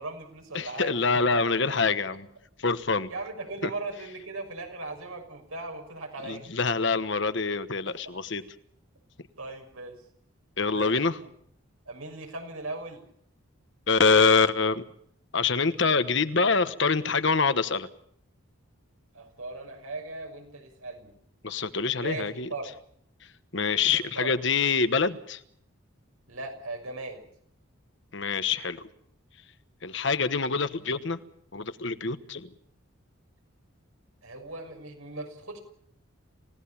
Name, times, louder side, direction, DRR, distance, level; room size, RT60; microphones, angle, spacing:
voice 1, 0.0-0.9 1.9-2.0 3.1-6.5 7.9-8.0 9.4-10.0 10.6-10.9 11.2-11.3 11.9-13.0 19.1-21.1 22.0-22.7 24.1-24.3 26.3-27.2 34.2-35.6, right 2 dB, 90° right, 4 dB, 6.2 m, -38 dB
voice 2, 0.5-2.3 2.6-3.1 3.6-3.7 6.2-8.4 10.6-11.2 13.9-14.8 15.3-17.9 21.4-22.5 23.5-25.4 28.1-28.9 29.8-31.2 31.5-32.5, left 4 dB, 60° left, 12 dB, 1.2 m, -25 dB
28.5 x 17.0 x 7.2 m, 0.68 s
head